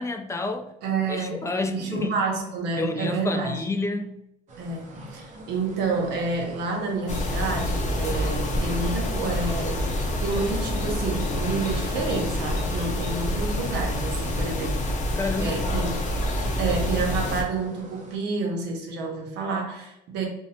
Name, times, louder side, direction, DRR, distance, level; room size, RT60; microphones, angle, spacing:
voice 1, 0.0-0.7 1.1-2.2 2.8-4.2 15.2-15.7, left 2 dB, 15° left, 0.3 m, -29 dB
voice 2, 0.8-3.6 4.6-14.8 15.4-16.0 16.6-20.3, right 4 dB, 85° right, 0.8 m, -29 dB
sound 1, 4.5-18.2, right 1 dB, 45° right, 0.6 m, -45 dB
sound 2, 7.1-17.4, left 1 dB, 45° left, 0.7 m, -27 dB
2.7 x 2.1 x 2.8 m
cardioid pair, 110°, 17 cm